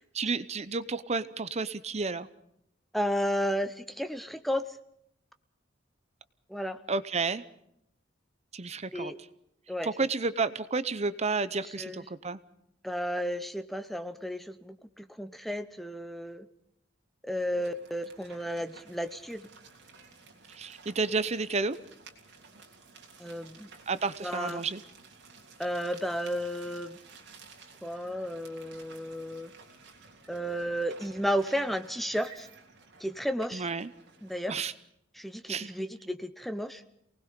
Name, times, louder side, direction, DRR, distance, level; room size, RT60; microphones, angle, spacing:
voice 1, 0.1-2.3 6.9-7.4 8.5-9.1 9.8-12.4 20.5-21.8 23.9-24.8 33.5-33.9 34.5-34.7 35.5-35.7, right 4 dB, 35° right, 14 dB, 0.7 m, -31 dB
voice 2, 2.9-4.7 6.5-6.8 8.9-9.2 9.7-9.9 11.6-12.1 12.8-16.5 17.2-19.5 23.2-23.7 24.2-24.6 25.6-27.0 27.8-29.5 30.3-32.5 33.0-33.7 34.2-34.6 35.1-36.8, equal, ahead, 10 dB, 0.8 m, -33 dB
sound 1, 17.4-34.6, right 4 dB, 60° right, 3.4 m, -54 dB
28.5 x 19.5 x 5.2 m, 0.74 s
head